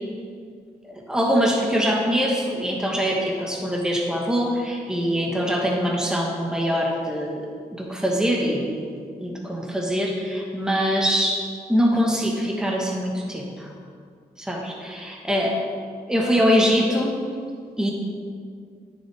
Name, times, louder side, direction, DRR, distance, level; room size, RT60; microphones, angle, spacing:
voice 1, 1.1-13.7 14.4-15.6 16.1-17.2 17.8-17.9, equal, 5° right, -1 dB, 1.2 m, -23 dB
9.9 x 6.4 x 3.4 m, 2.1 s
cardioid pair, 65°, 17 cm